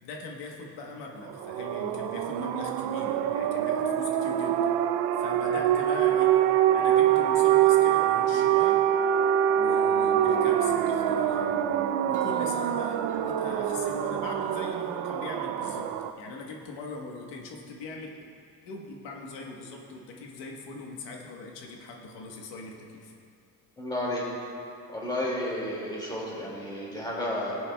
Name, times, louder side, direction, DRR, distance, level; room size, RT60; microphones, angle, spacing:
voice 1, 0.0-4.7 5.2-6.4 6.7-8.9 9.6-11.6 12.1-18.2 18.6-23.1, left 3 dB, 85° left, 0 dB, 1.2 m, -40 dB
sound 1, 1.3-16.1, right 10 dB, 80° right, 0.6 m, -25 dB
sound 2, 9.7-14.7, right 5 dB, 45° right, 1.0 m, -40 dB
voice 2, 23.8-24.2 24.9-27.6, left 1 dB, 10° left, -5 dB, 2.1 m, -32 dB
17.5 x 8.4 x 2.2 m, 2.4 s
cardioid pair, 155°, 41 cm